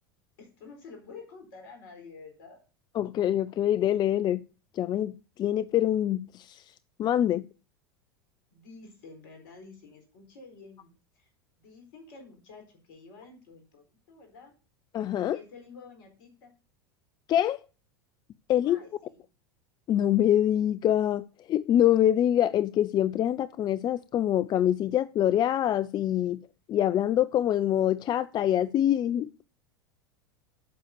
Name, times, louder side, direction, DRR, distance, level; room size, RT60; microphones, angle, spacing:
voice 1, 0.4-2.6 8.5-11.3 11.6-14.5 15.3-16.5 18.6-19.2, left 4 dB, 65° left, 4.0 m, -49 dB
voice 2, 3.0-4.4 4.8-5.1 5.4-6.6 7.0-7.4 14.9-15.4 17.3-17.6 18.5-18.8 19.9-26.4 26.7-29.5, left 11 dB, 35° left, 0.5 m, -25 dB
7.8 x 6.4 x 6.6 m
hypercardioid pair, 90°, 13 cm